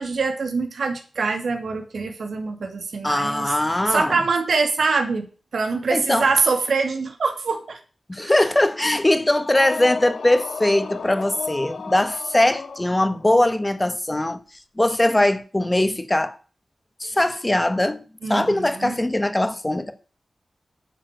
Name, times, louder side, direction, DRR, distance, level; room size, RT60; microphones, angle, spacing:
voice 1, 0.0-3.5 3.9-5.3 5.5-7.8 8.1-8.3 18.2-19.0, right 4 dB, 85° right, 2.5 m, -24 dB
voice 2, 3.0-4.2 5.9-6.3 8.1-14.4 14.8-16.4 17.0-18.0 18.3-19.9, left 1 dB, 15° left, 1.4 m, -21 dB
sound 1, 9.4-13.4, left 4 dB, 80° left, 2.0 m, -33 dB
11.0 x 7.3 x 6.6 m
wide cardioid pair, 90°, 0 cm